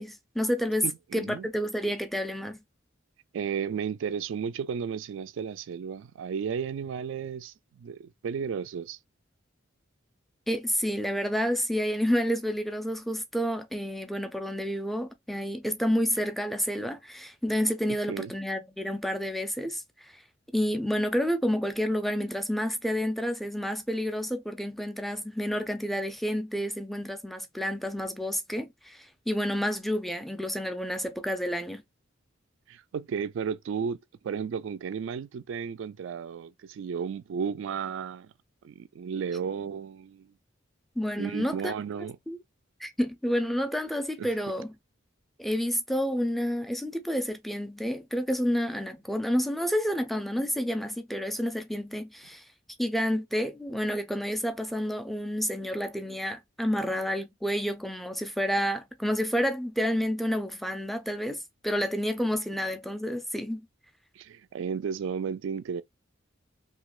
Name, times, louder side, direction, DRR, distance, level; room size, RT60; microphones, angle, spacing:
voice 1, 0.0-0.9 1.1-2.6 10.5-20.1 20.5-31.8 41.0-41.7 42.3-42.4 42.8-44.7 45.4-52.4 52.8-63.6, equal, ahead, 0.4 m, -29 dB
voice 2, 0.8-1.5 3.3-9.0 17.9-18.3 32.7-34.0 34.2-38.3 38.6-40.3 41.2-42.2 44.2-44.3 64.1-65.8, right 6 dB, 65° right, 0.3 m, -33 dB
3.7 x 2.8 x 2.4 m
head